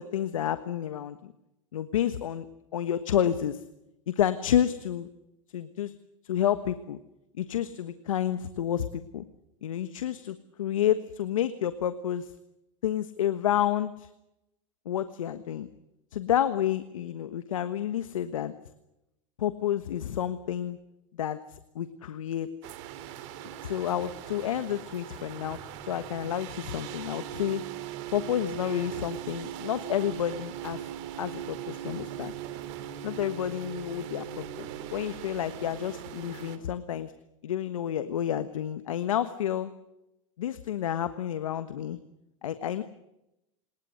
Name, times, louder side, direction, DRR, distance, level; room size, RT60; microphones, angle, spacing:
voice 1, 0.0-1.3 1.7-2.5 2.7-3.6 4.1-5.1 5.5-5.9 6.2-7.0 7.4-9.2 9.6-12.3 12.8-14.1 14.8-15.7 16.1-18.5 19.4-20.8 21.2-22.5 23.6-27.6 28.1-30.8 31.2-32.3 33.0-37.1 37.4-39.7 40.4-42.0 42.4-42.8, left 10 dB, 85° left, 11 dB, 1.3 m, -30 dB
sound 1, 22.6-36.6, right 10 dB, 60° right, 3.2 m, -40 dB
29.0 x 20.0 x 6.5 m, 0.89 s
hypercardioid pair, 105°, 17 cm